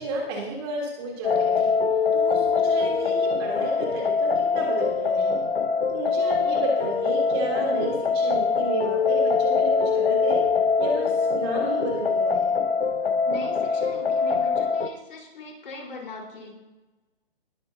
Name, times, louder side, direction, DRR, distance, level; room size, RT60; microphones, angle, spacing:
voice 1, 0.0-1.8 2.1-5.4 5.9-10.5 10.8-12.5, right 1 dB, 25° right, -2 dB, 3.2 m, -31 dB
sound 1, 1.2-14.9, left 5 dB, 85° left, 1.0 m, -23 dB
voice 2, 13.2-16.5, left 3 dB, 65° left, -1 dB, 4.4 m, -40 dB
20.0 x 11.0 x 2.8 m, 1.1 s
hypercardioid pair, 160°, 30 cm